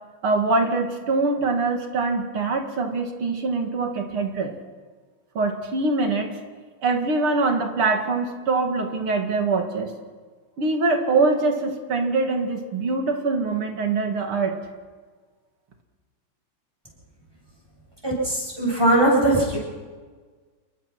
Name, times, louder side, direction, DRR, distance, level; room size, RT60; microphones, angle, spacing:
voice 1, 0.2-4.5 5.3-6.3 6.8-9.9 10.6-14.6, right 3 dB, 75° right, 4 dB, 3.1 m, -23 dB
voice 2, 18.0-19.6, right 1 dB, 10° right, -3 dB, 8.1 m, -20 dB
28.0 x 22.0 x 6.0 m, 1.5 s
omnidirectional pair, 2.4 m